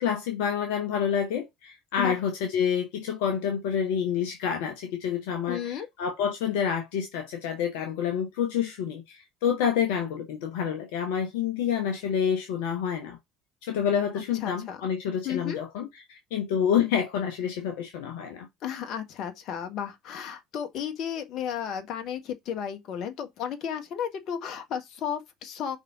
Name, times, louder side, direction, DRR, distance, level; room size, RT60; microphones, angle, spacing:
voice 1, 0.0-13.2 13.6-18.5, left 8 dB, 65° left, 0.9 m, -28 dB
voice 2, 5.5-5.9 14.4-14.8 15.2-15.6 18.6-25.8, left 8 dB, 50° left, 1.4 m, -33 dB
5.4 x 3.6 x 4.9 m
figure-of-eight pair, 65°, 0 cm